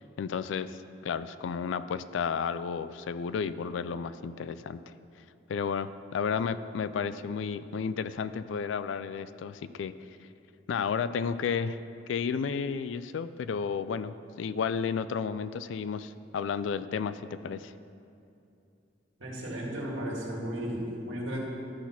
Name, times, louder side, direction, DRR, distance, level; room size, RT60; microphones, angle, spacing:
voice 1, 0.0-4.9 5.5-9.9 10.7-11.8 12.1-17.7, left 6 dB, 80° left, 14 dB, 0.3 m, -32 dB
voice 2, 19.2-21.4, equal, 85° right, -2 dB, 1.8 m, -34 dB
12.5 x 4.1 x 5.8 m, 2.6 s
head